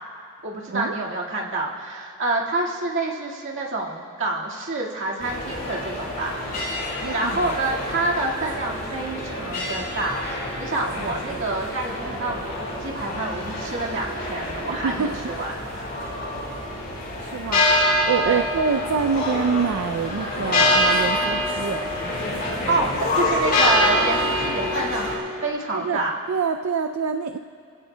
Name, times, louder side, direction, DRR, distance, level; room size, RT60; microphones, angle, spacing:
voice 1, 0.4-6.4 6.8-16.0 18.2-18.5 22.7-26.2, right 2 dB, 60° right, -3 dB, 1.8 m, -28 dB
sound 1, 5.2-25.2, left 1 dB, 45° left, 4.3 m, -26 dB
voice 2, 7.0-7.5 14.7-15.1 17.2-21.9 22.2-22.3 25.7-26.0 26.3-27.4, right 5 dB, 75° right, 7 dB, 0.4 m, -26 dB
26.5 x 16.5 x 2.2 m, 2.4 s
head